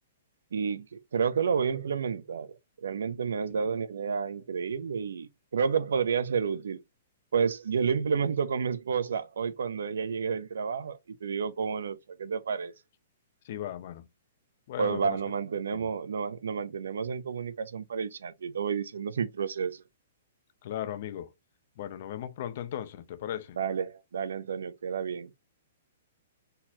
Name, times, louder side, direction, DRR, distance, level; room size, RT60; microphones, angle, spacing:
voice 1, 0.5-2.5 2.8-6.8 7.3-12.7 14.8-19.8 23.6-25.3, right 6 dB, 85° right, 0.7 m, -30 dB
voice 2, 13.4-14.1 14.7-15.2 15.7-15.9 20.6-21.3 21.8-23.6, left 11 dB, 50° left, 0.7 m, -37 dB
4.3 x 4.0 x 2.8 m
hypercardioid pair, 155°, 0 cm